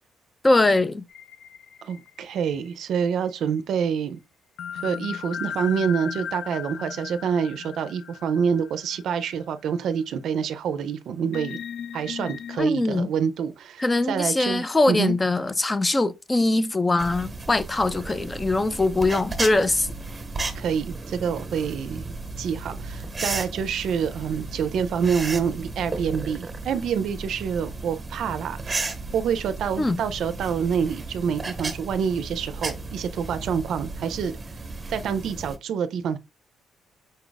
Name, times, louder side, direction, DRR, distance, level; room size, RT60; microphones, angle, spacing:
voice 1, 0.4-1.0 12.6-13.1 13.8-19.9 29.8-30.0, left 2 dB, 20° left, 0.4 m, -22 dB
sound 1, 1.1-3.1 4.6-9.4 9.9-10.0 11.3-12.6, left 8 dB, 85° left, 0.5 m, -37 dB
voice 2, 1.8-4.2 4.8-11.6 11.9-15.1 20.5-22.0 22.4-28.7 29.1-34.3 34.9-36.2, right 7 dB, 70° right, 0.4 m, -27 dB
sound 2, 17.0-35.6, right 3 dB, 20° right, 1.0 m, -34 dB
5.3 x 2.3 x 3.9 m
cardioid pair, 115°, 0 cm